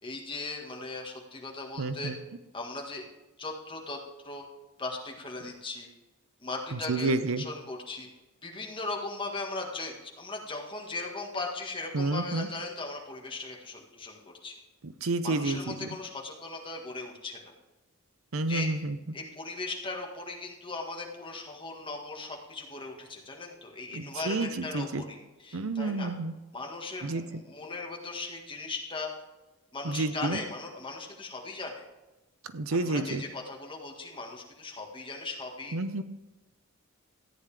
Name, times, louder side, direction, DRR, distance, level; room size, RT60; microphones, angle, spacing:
voice 1, 0.0-2.1 2.5-3.0 3.4-4.0 4.2-4.4 4.8-5.9 6.4-8.1 8.4-14.5 15.2-17.5 18.5-18.8 19.1-26.1 26.5-29.1 29.7-31.8 32.7-35.8, left 3 dB, 25° left, 0 dB, 1.6 m, -38 dB
voice 2, 1.8-2.1 6.7-7.4 11.9-12.5 14.8-15.9 18.3-19.0 23.9-25.0 25.5-26.3 27.0-27.2 29.8-30.4 32.5-33.2 35.7-36.0, right 3 dB, 75° right, 11 dB, 0.7 m, -30 dB
14.0 x 9.2 x 3.4 m, 1.1 s
head